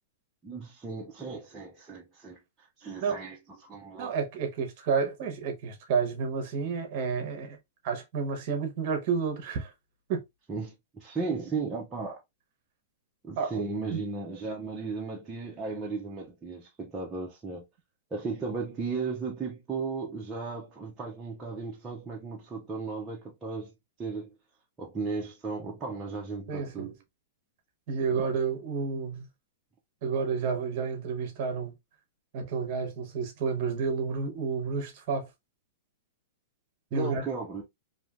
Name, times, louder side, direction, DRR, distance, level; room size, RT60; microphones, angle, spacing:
voice 1, 0.4-4.1 10.5-12.2 13.2-17.7 18.1-23.7 24.0-24.4 24.8-26.9 36.9-37.6, right 4 dB, 10° right, 0.4 m, -35 dB
voice 2, 4.0-7.6 7.8-9.7 10.1-10.2 13.4-13.6 13.9-14.0 26.5-26.9 27.9-29.3 30.0-31.7 32.3-35.3 36.9-37.3, right 5 dB, 35° right, 0.7 m, -30 dB
3.1 x 2.5 x 2.3 m
supercardioid pair, 180°, 0 cm